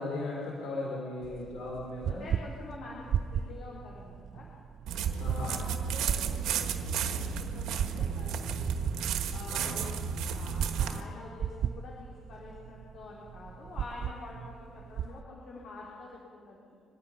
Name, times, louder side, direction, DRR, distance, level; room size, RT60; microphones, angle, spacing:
voice 1, 0.0-2.3 5.2-5.5 9.5-9.8, left 2 dB, 85° left, -3 dB, 4.2 m, -37 dB
sound 1, 1.2-15.2, right 8 dB, 65° right, 0.5 m, -36 dB
voice 2, 2.1-4.5 5.3-8.6 9.3-10.0 10.3-16.7, left 3 dB, 65° left, -4 dB, 4.7 m, -46 dB
sound 2, 4.9-11.0, right 7 dB, 85° right, 1.4 m, -33 dB
25.0 x 10.5 x 9.9 m, 2.3 s
cardioid pair, 90°, 0 cm